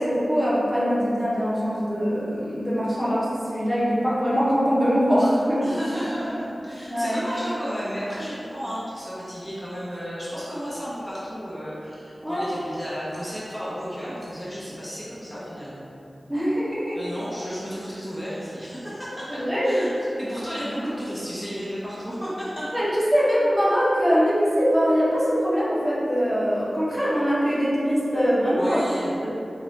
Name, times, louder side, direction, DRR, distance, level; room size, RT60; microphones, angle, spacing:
voice 1, 0.0-5.6 6.9-7.3 12.2-12.5 16.3-17.0 19.3-19.8 22.7-28.9 29.2-29.3, equal, 20° right, -9 dB, 1.0 m, -22 dB
voice 2, 5.6-15.9 16.9-19.9 20.2-22.7 23.3-23.4 28.6-29.2, equal, 10° left, -9 dB, 0.8 m, -33 dB
4.1 x 2.6 x 3.1 m, 2.7 s
wide cardioid pair, 65°, 0 cm